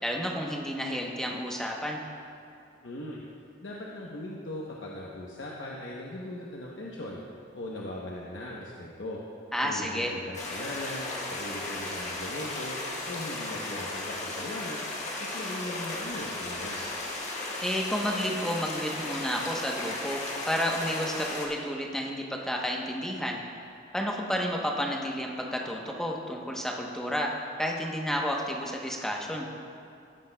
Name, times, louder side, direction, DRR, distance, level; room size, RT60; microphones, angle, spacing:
voice 1, 0.0-2.0 9.5-10.1 17.6-23.4 23.9-27.3 27.6-29.5, equal, 5° left, -1 dB, 0.9 m, -31 dB
voice 2, 2.8-3.2 3.6-7.2 7.5-9.2 9.6-12.8 13.1-14.8 15.2-16.8, left 1 dB, 80° left, -3 dB, 0.9 m, -39 dB
sound 1, 10.3-21.5, left 2 dB, 40° left, 1.3 m, -35 dB
15.5 x 9.7 x 2.2 m, 2.5 s
head